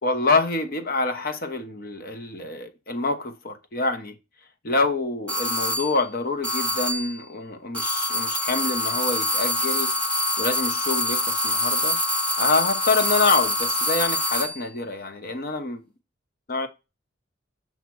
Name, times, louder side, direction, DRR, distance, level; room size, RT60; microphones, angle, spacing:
voice 1, 0.0-4.1 4.6-9.9 10.4-12.0 12.4-15.8 16.5-16.7, left 3 dB, 50° left, 0.9 m, -26 dB
sound 1, 5.3-6.0 6.4-7.2 7.7-14.6, left 1 dB, 5° left, 1.4 m, -25 dB
7.2 x 2.9 x 6.0 m
head